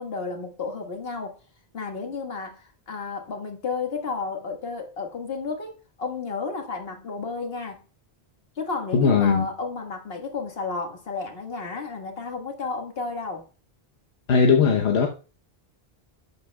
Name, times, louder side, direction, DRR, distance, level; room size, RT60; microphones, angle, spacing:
voice 1, 0.0-1.3 1.7-7.8 8.6-13.5, left 4 dB, 65° left, 1.7 m, -32 dB
voice 2, 8.9-9.5 14.3-15.1, left 5 dB, 85° left, 1.2 m, -19 dB
11.0 x 8.6 x 2.3 m
omnidirectional pair, 1.1 m